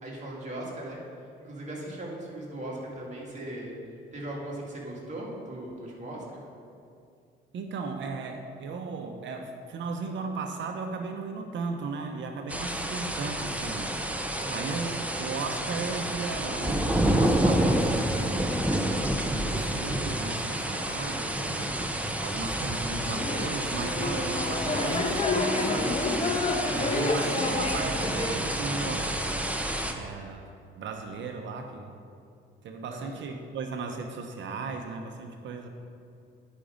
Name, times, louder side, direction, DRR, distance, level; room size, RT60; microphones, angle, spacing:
voice 1, 0.0-1.0 1.4-3.7 4.1-6.4 14.3-14.7 26.6-27.0 32.9-33.1, right 1 dB, 35° right, -3 dB, 2.2 m, -38 dB
voice 2, 7.5-14.0 14.5-18.5 19.2-21.7 22.2-26.0 26.7-29.2 29.9-30.5 30.8-31.9 32.6-35.7, right 4 dB, 70° right, 5 dB, 0.8 m, -36 dB
sound 1, 12.5-29.9, right 1 dB, 5° right, 0.7 m, -29 dB
sound 2, 23.1-28.4, left 3 dB, 30° left, 1.0 m, -29 dB
10.0 x 5.2 x 5.1 m, 2.4 s
cardioid pair, 90°, 20 cm